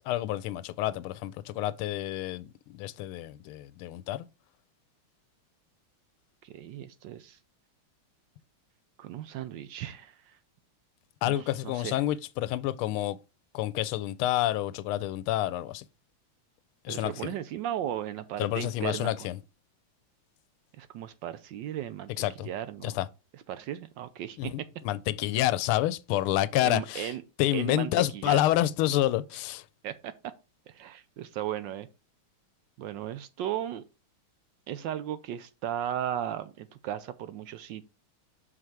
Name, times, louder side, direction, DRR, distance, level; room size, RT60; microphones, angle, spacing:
voice 1, 0.1-4.2 11.2-13.2 13.5-15.8 16.8-17.3 18.4-19.4 22.2-22.5 22.8-23.1 24.4-27.1 27.4-29.6, left 14 dB, 90° left, 1.4 m, -28 dB
voice 2, 6.4-7.4 9.0-10.4 11.2-12.0 16.9-19.3 20.8-22.1 22.4-23.0 23.3-24.5 26.6-27.2 27.5-28.4 29.8-30.3 30.7-31.9 32.8-33.8 34.7-37.8, right 11 dB, 75° right, 1.1 m, -36 dB
6.0 x 4.9 x 4.7 m
omnidirectional pair, 2.3 m